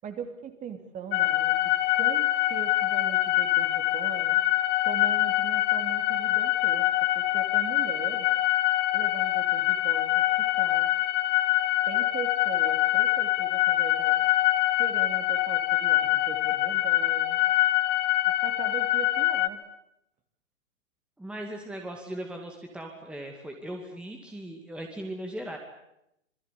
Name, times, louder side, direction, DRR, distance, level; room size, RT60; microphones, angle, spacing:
voice 1, 0.0-1.6 1.9-4.4 4.8-6.9 7.1-8.3 8.9-10.9 11.9-14.2 14.8-17.4 18.4-19.6, right 7 dB, 20° right, 7 dB, 2.9 m, -40 dB
sound 1, 1.1-19.5, left 15 dB, 25° left, 1.4 m, -24 dB
voice 2, 21.2-25.6, right 1 dB, 5° right, 2 dB, 2.3 m, -38 dB
26.5 x 21.5 x 8.5 m, 0.82 s
hypercardioid pair, 135°, 39 cm